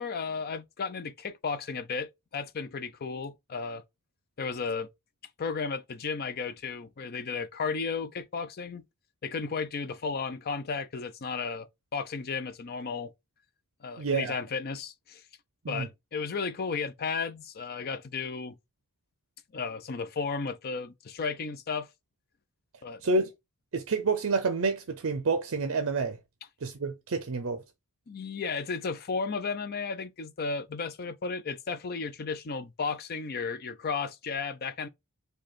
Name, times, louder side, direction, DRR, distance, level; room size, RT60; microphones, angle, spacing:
voice 1, 0.0-3.8 4.4-4.9 5.4-8.8 9.2-11.7 11.9-13.1 13.8-15.2 15.7-18.6 19.5-21.9 22.8-23.1 28.1-34.9, left 5 dB, 45° left, 0.5 m, -34 dB
voice 2, 14.0-14.3 15.6-15.9 23.0-23.3 23.7-26.2 26.6-27.6, right 4 dB, 65° right, 0.5 m, -28 dB
4.9 x 2.3 x 4.2 m
head